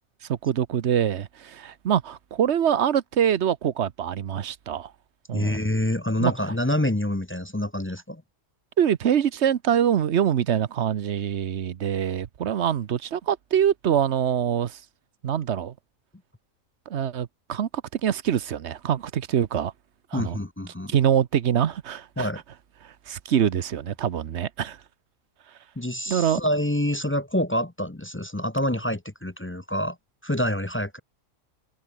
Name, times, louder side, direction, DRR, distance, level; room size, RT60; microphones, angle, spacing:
voice 1, 0.3-4.9 5.3-5.6 6.2-6.3 8.8-14.8 15.2-15.7 16.9-19.7 20.1-20.4 20.9-22.3 22.8-24.8 26.1-26.4, right 9 dB, 60° right, 1.1 m, -24 dB
voice 2, 5.3-8.2 20.1-20.9 22.2-22.4 25.8-30.0 30.2-31.0, left 1 dB, 10° left, 0.6 m, -27 dB
omnidirectional pair, 1.4 m